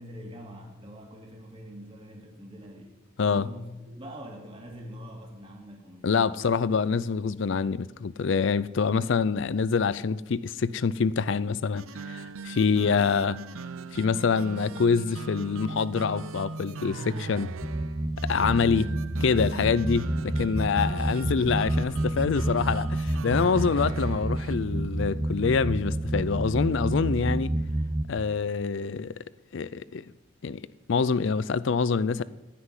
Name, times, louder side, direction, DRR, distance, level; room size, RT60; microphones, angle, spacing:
voice 1, 0.0-2.9 3.3-6.5, equal, 25° right, 2.4 m, -44 dB
voice 2, 6.0-13.4 13.9-17.5 18.2-18.9 19.2-27.5 28.1-29.1 29.5-30.1 30.4-30.6 30.9-32.2, left 5 dB, 60° left, 0.4 m, -26 dB
sound 1, 11.8-24.6, right 4 dB, 80° right, 0.6 m, -39 dB
sound 2, 17.6-28.0, right 1 dB, 10° right, 0.6 m, -29 dB
16.0 x 5.9 x 9.8 m
head